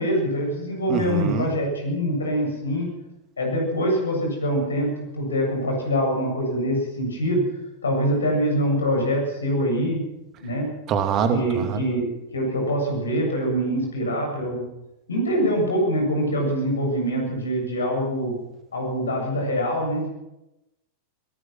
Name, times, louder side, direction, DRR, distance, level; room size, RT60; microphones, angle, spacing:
voice 1, 0.0-2.9 3.4-7.4 7.8-10.0 10.4-10.7 11.3-12.1 12.3-14.6 15.1-18.3 18.7-20.1, equal, 70° left, 2 dB, 7.6 m, -24 dB
voice 2, 0.9-1.5 10.9-11.6, right 7 dB, 35° right, 7 dB, 2.5 m, -24 dB
22.5 x 19.0 x 6.1 m, 0.94 s
figure-of-eight pair, 90°, 0 cm